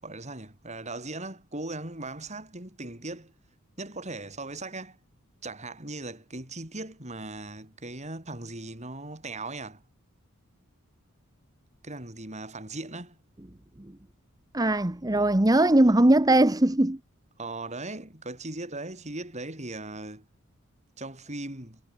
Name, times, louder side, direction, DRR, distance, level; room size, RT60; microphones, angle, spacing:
voice 1, 0.0-3.3 3.8-5.0 5.4-9.8 11.8-13.2 17.4-20.3 21.0-21.8, right 2 dB, 30° right, 5.8 m, -38 dB
voice 2, 14.5-17.0, right 1 dB, 15° right, 0.9 m, -20 dB
head